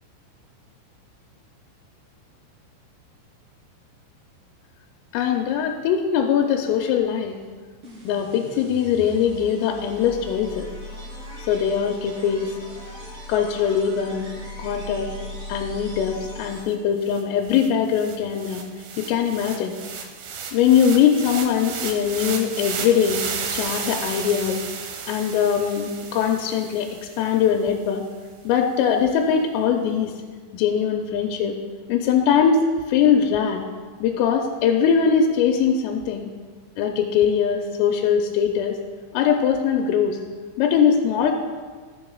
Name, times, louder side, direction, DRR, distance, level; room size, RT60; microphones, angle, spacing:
voice 1, 5.1-7.4 8.0-10.7 11.5-12.5 13.3-14.2 14.6-15.1 15.5-18.7 19.0-19.7 20.5-24.6 25.1-26.9 27.2-28.0 28.4-30.1 30.5-31.5 31.9-33.7 34.0-36.3 36.8-38.8 39.1-40.2 40.6-41.4, left 7 dB, 90° left, 2 dB, 3.3 m, -21 dB
sound 1, 7.8-17.0, equal, 45° right, 3.8 m, -39 dB
sound 2, 16.7-16.8 17.1-27.4, right 6 dB, 85° right, 2.1 m, -34 dB
18.5 x 8.2 x 2.3 m, 1.5 s
omnidirectional pair, 5.8 m